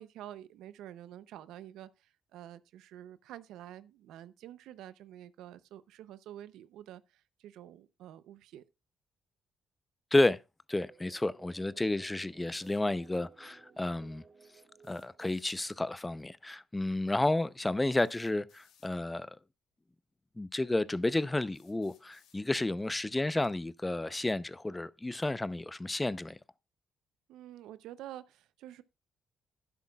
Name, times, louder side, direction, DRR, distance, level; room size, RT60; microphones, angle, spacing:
voice 1, 0.0-8.6 27.3-28.8, right 12 dB, 90° right, 0.6 m, -48 dB
voice 2, 10.7-14.2 14.9-19.4 20.4-26.4, left 2 dB, 15° left, 0.6 m, -31 dB
sound 1, 10.7-15.9, right 5 dB, 50° right, 2.2 m, -59 dB
sound 2, 12.5-12.8 14.8-15.5 16.9-17.0 18.0-18.9 19.9-20.0 20.7-20.8 21.5-22.4, left 8 dB, 90° left, 2.7 m, -66 dB
11.5 x 10.5 x 2.3 m
cardioid pair, 90°, 0 cm